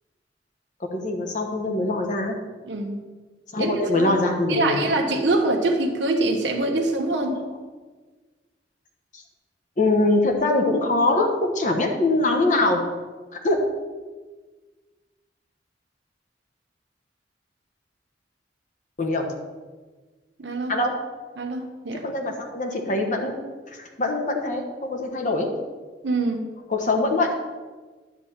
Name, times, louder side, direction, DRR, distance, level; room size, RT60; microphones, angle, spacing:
voice 1, 0.8-2.3 3.5-4.9 9.1-9.2 9.8-12.9 13.4-13.6 19.0-19.2 20.7-20.9 22.0-23.4 23.7-25.5 26.7-27.3, left 2 dB, 45° left, 3 dB, 1.2 m, -23 dB
voice 2, 2.6-3.0 3.6-4.1 4.5-7.4 20.4-20.8 21.4-22.0 26.0-26.5, right 2 dB, 85° right, 1 dB, 1.1 m, -24 dB
10.5 x 3.6 x 7.3 m, 1.3 s
head